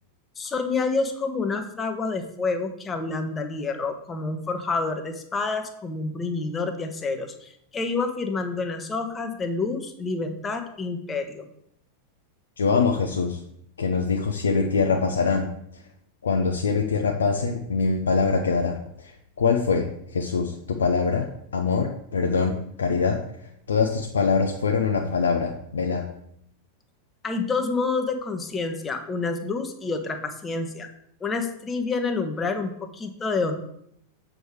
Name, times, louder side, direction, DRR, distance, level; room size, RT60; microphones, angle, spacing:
voice 1, 0.4-11.5 27.2-30.9 31.2-33.5, left 4 dB, 20° left, 6 dB, 1.1 m, -28 dB
voice 2, 12.6-13.4 13.8-15.5 15.7-15.8 16.2-26.0, left 5 dB, 70° left, 2 dB, 0.8 m, -24 dB
7.8 x 5.1 x 4.8 m, 0.73 s
figure-of-eight pair, 90°, 0 cm